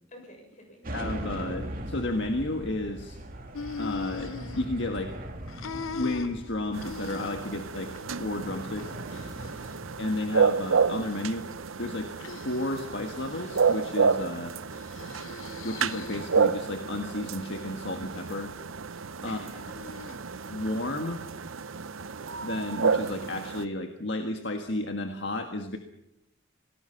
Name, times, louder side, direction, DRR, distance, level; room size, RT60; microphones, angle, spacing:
voice 1, 0.1-0.9 9.3-9.8 14.9-15.2 19.2-19.8 20.2-20.3 21.4-21.8, equal, 40° left, 3 dB, 6.9 m, -51 dB
sound 1, 0.8-20.0, right 1 dB, 45° right, 3.0 m, -42 dB
voice 2, 0.9-3.2 3.8-5.2 5.7-7.9 8.2-8.9 10.0-11.5 11.8-12.2 12.4-14.5 15.0-15.1 15.6-18.5 19.2-19.4 20.5-21.2 22.4-25.8, left 2 dB, 60° left, 5 dB, 1.6 m, -32 dB
sound 2, 3.5-5.2 5.5-7.6 7.9-8.3 8.7-9.7 10.4-11.3 12.2-12.8 13.2-13.9 14.7-16.4 16.9-17.7 19.5-20.2, left 5 dB, 80° left, 0.7 m, -41 dB
sound 3, 6.7-23.6, right 5 dB, 80° right, 0.8 m, -30 dB
27.0 x 19.0 x 5.8 m, 0.83 s
head